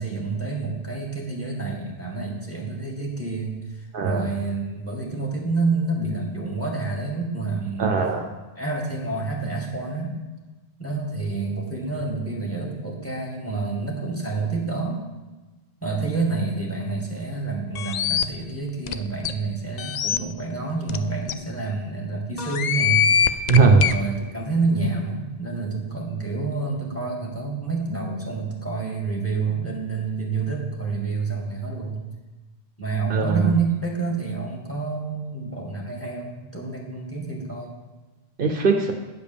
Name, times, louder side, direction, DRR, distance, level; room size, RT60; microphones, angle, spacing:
voice 1, 0.0-8.0 8.6-10.2 10.8-15.0 15.8-23.4 23.9-32.0 32.8-37.7, right 4 dB, 15° left, -1 dB, 2.1 m, -28 dB
voice 2, 3.9-4.3 7.8-8.3 23.5-23.8 33.1-33.5 38.4-38.9, right 4 dB, 60° right, 4 dB, 0.9 m, -19 dB
sound 1, 17.7-18.2 18.9-19.0 19.2-19.3 19.8-20.2 20.9-21.0 21.3-21.4 22.4-23.9, left 8 dB, 55° left, 0.5 m, -22 dB
9.7 x 5.1 x 6.9 m, 1.2 s
omnidirectional pair, 1.1 m